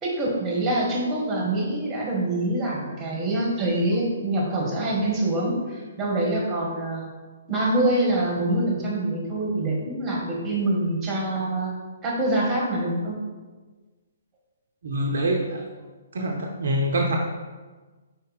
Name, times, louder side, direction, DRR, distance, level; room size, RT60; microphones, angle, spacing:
voice 1, 0.0-7.1 7.5-11.7 12.0-13.2, right 1 dB, 15° right, -2 dB, 1.8 m, -25 dB
voice 2, 14.8-15.6 16.1-17.2, right 1 dB, 60° right, 1 dB, 0.6 m, -25 dB
5.2 x 4.3 x 4.2 m, 1.3 s
figure-of-eight pair, 125°, 0 cm